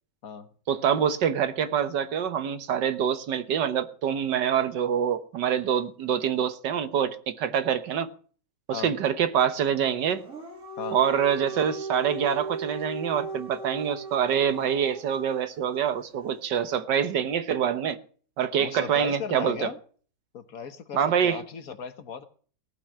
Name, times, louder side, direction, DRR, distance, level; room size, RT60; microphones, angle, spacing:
voice 1, 0.7-8.1 8.7-10.2 10.9-18.0 18.4-19.7 20.9-21.4, right 8 dB, 85° right, 1.8 m, -25 dB
Dog, 10.1-15.3, right 4 dB, 45° right, 2.5 m, -37 dB
voice 2, 18.6-19.8 20.3-22.2, left 6 dB, 60° left, 1.5 m, -36 dB
18.0 x 6.2 x 8.3 m
omnidirectional pair, 1.8 m